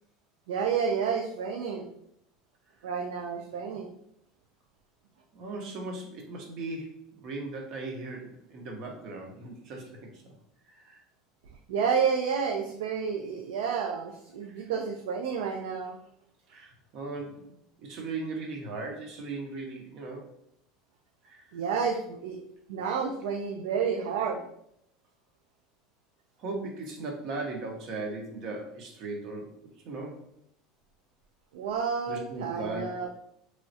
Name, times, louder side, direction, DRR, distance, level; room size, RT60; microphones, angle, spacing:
voice 1, 0.5-1.9 2.8-3.9 11.7-16.0 21.5-22.4 22.7-24.4 31.5-33.1, right 6 dB, 85° right, 2 dB, 0.3 m, -30 dB
voice 2, 5.3-10.3 10.7-11.0 14.5-14.7 16.5-20.3 21.2-21.5 26.4-29.5 29.8-30.2 32.1-32.9, right 3 dB, 55° right, 1 dB, 0.8 m, -38 dB
3.1 x 2.3 x 2.6 m, 0.73 s
supercardioid pair, 115°, 0 cm